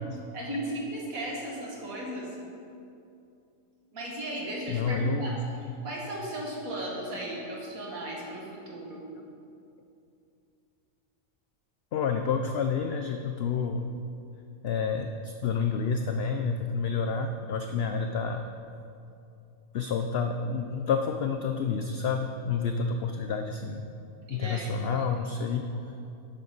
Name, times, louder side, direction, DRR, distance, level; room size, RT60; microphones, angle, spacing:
voice 1, 0.3-2.3 3.9-5.4 5.8-9.0 24.3-25.1, right 1 dB, 80° right, -2 dB, 2.2 m, -36 dB
voice 2, 4.7-5.4 11.9-13.9 14.6-18.4 19.7-23.8 24.3-25.7, left 5 dB, 60° left, 5 dB, 0.7 m, -29 dB
12.0 x 9.2 x 3.9 m, 2.6 s
omnidirectional pair, 1.5 m